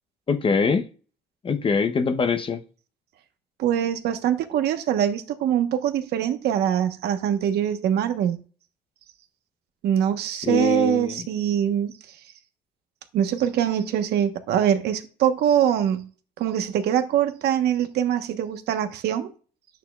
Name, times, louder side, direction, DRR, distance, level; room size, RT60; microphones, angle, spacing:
voice 1, 0.3-0.9 1.4-2.6 10.4-11.2, left 5 dB, 30° left, 0.8 m, -23 dB
voice 2, 3.6-8.4 9.8-11.9 13.1-16.1 16.4-19.3, right 10 dB, 75° right, 1.1 m, -23 dB
11.0 x 8.9 x 2.4 m
cardioid pair, 110°, 17 cm